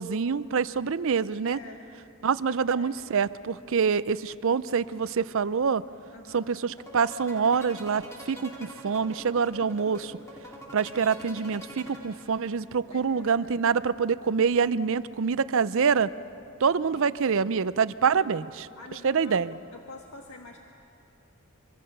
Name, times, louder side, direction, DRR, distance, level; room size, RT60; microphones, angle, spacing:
voice 1, 0.0-1.6 2.2-5.8 6.3-10.2 10.7-16.1 16.6-18.7 19.0-19.5, right 6 dB, 60° right, 16 dB, 0.5 m, -26 dB
voice 2, 1.4-1.8 2.5-3.1 6.1-6.5 12.9-13.6 16.9-17.2 18.1-18.3 18.8-19.4 19.7-20.6, left 3 dB, 85° left, 2 dB, 1.4 m, -46 dB
sound 1, 6.7-12.6, equal, 15° left, 2.6 m, -44 dB
24.0 x 24.0 x 6.7 m, 2.7 s
head